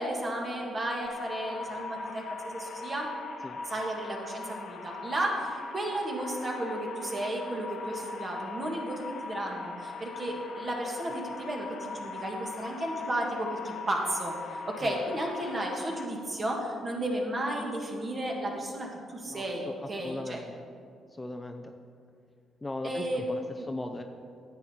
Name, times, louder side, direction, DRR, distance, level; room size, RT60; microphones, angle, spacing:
voice 1, 0.0-3.1 3.6-20.4 22.8-23.3 23.6-23.7, right 1 dB, 35° right, 0 dB, 1.9 m, -33 dB
sound 1, 1.1-16.1, left 3 dB, 65° left, 0.8 m, -40 dB
voice 2, 19.3-19.7 20.0-20.6 21.2-21.7 22.6-23.4 23.7-24.0, left 2 dB, 15° left, 5 dB, 0.5 m, -38 dB
10.5 x 8.1 x 4.4 m, 2.3 s
cardioid pair, 90°, 0 cm